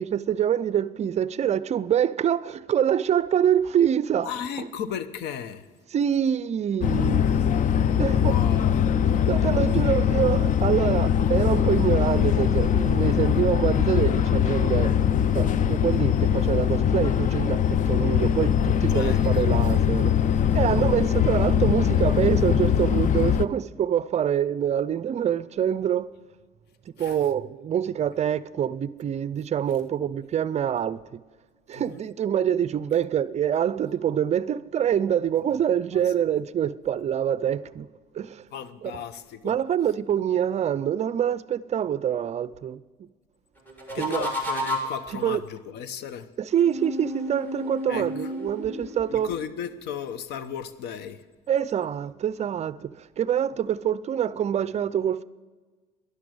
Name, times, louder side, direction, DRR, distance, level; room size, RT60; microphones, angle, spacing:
voice 1, 0.0-4.3 4.6-4.7 5.9-7.3 8.0-8.4 9.1-15.0 15.3-26.1 27.0-31.2 31.7-37.9 38.1-38.4 38.8-38.9 39.4-43.1 44.0-44.3 45.1-45.4 46.4-49.3 51.5-55.2, right 9 dB, 40° right, 0.5 m, -25 dB
voice 2, 4.2-5.7 8.2-8.8 18.9-19.3 27.0-27.2 31.7-32.0 38.5-39.5 43.9-46.3 47.9-48.1 49.1-51.2, left 8 dB, 75° left, 0.9 m, -35 dB
sound 1, 6.8-23.5, left 9 dB, 50° left, 0.5 m, -22 dB
sound 2, 43.7-45.1 46.5-49.4, equal, 10° left, 3.3 m, -32 dB
11.5 x 11.0 x 7.8 m
cardioid pair, 110°, 17 cm